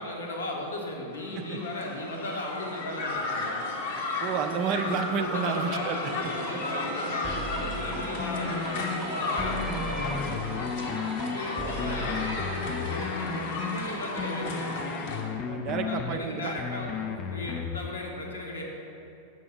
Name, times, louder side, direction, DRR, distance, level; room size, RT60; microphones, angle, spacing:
voice 1, 0.0-3.5 5.2-10.4 11.3-14.8 15.8-18.6, left 1 dB, 75° left, -1 dB, 1.2 m, -37 dB
sound 1, 1.1-15.2, left 2 dB, 55° left, 1.0 m, -34 dB
voice 2, 4.2-6.3 11.6-11.8 15.5-16.5, right 6 dB, 40° right, 7 dB, 0.5 m, -31 dB
sound 2, 6.2-13.4, right 1 dB, 10° right, 0.8 m, -38 dB
sound 3, 8.2-9.0 9.4-11.4 11.8-13.8 14.2-16.2 16.6-17.8, left 6 dB, 30° left, 0.4 m, -34 dB
6.9 x 5.7 x 5.0 m, 2.7 s
figure-of-eight pair, 90°, 0 cm